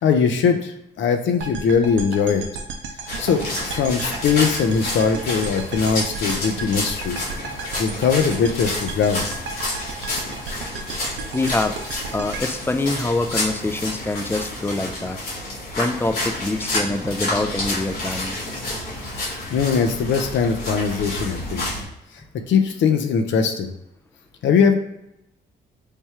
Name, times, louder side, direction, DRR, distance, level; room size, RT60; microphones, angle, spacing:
voice 1, 0.0-2.4 3.2-7.3 7.8-9.2 19.2-21.7 22.5-23.7 24.4-24.7, left 6 dB, 70° left, 6 dB, 0.6 m, -21 dB
sound 1, 1.4-13.6, right 4 dB, 70° right, 0.6 m, -34 dB
sound 2, 3.1-21.8, left 1 dB, 90° left, 1.4 m, -29 dB
voice 2, 11.3-11.8 12.1-15.2 15.8-18.4, left 2 dB, 10° left, 7 dB, 0.4 m, -25 dB
3.3 x 2.3 x 4.2 m, 0.86 s
cardioid pair, 70°, 20 cm